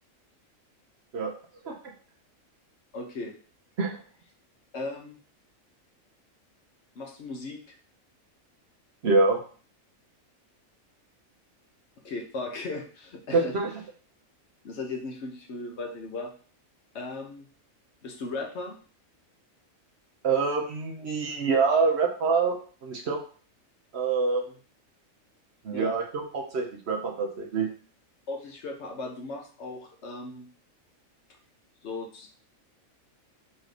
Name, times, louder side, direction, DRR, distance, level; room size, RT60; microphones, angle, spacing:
voice 1, 2.9-3.4 4.7-5.2 7.0-7.8 12.0-13.6 14.6-16.3 16.9-17.5 18.0-18.8 25.7-26.0 28.3-30.5 31.8-32.3, left 3 dB, 60° left, 3 dB, 1.0 m, -37 dB
voice 2, 9.0-9.4 13.3-13.7 20.2-23.2 23.9-24.4 25.6-27.7, right 4 dB, 60° right, 0 dB, 1.0 m, -25 dB
4.2 x 2.6 x 4.8 m, 0.41 s
omnidirectional pair, 1.4 m